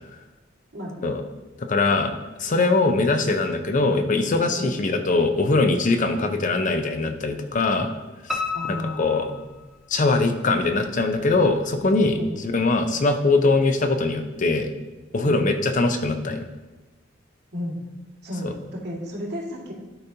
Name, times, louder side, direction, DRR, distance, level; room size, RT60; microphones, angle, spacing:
voice 1, 0.7-1.1 4.6-4.7 8.5-9.5 12.2-12.3 15.2-15.4 17.5-17.8 18.2-19.7, equal, 60° right, -4 dB, 2.0 m, -33 dB
voice 2, 1.6-2.1 2.4-7.9 8.3-8.4 8.7-9.3 9.9-14.7 15.1-16.4 18.4-18.5, left 3 dB, 45° left, 7 dB, 0.6 m, -22 dB
Piano, 8.3-10.2 10.6-11.5 11.8-11.9 12.4-12.5 12.7-12.8, left 5 dB, ahead, 0.5 m, -32 dB
11.5 x 4.1 x 2.8 m, 1.2 s
head